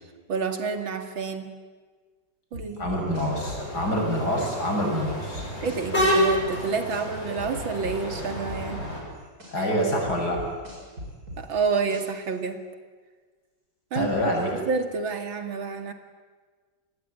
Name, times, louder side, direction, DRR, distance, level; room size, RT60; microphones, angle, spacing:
voice 1, 0.3-1.5 2.5-2.9 5.6-8.8 9.6-9.7 11.4-12.6 13.9-14.3 14.7-15.9, right 5 dB, 90° right, 7 dB, 2.9 m, -29 dB
sound 1, 2.5-4.5 5.0-7.0 7.4-9.5 10.0-12.3, left 1 dB, 50° right, 7.2 m, -39 dB
voice 2, 2.8-5.5 9.5-10.4 13.9-14.5, equal, 55° left, 0 dB, 7.4 m, -26 dB
sound 2, 3.1-9.0, equal, 30° left, 7.8 m, -29 dB
28.5 x 21.0 x 9.5 m, 1.5 s
omnidirectional pair, 2.1 m